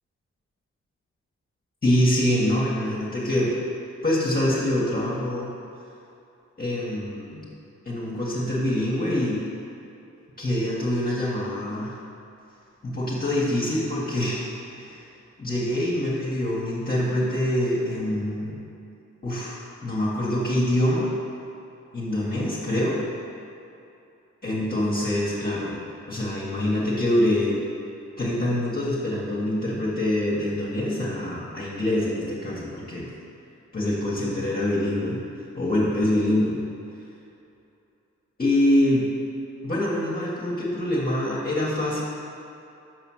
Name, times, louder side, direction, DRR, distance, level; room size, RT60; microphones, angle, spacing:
voice 1, 1.8-3.5 4.0-5.5 6.6-7.5 7.9-9.4 10.4-11.9 12.8-15.1 15.4-18.6 19.2-21.1 21.9-23.0 24.4-25.8 26.1-27.6 28.2-33.1 33.7-35.2 35.5-36.6 38.4-39.1 39.6-42.0, left 1 dB, 30° left, -7 dB, 1.7 m, -25 dB
6.7 x 5.0 x 6.4 m, 2.8 s
cardioid pair, 70°, 29 cm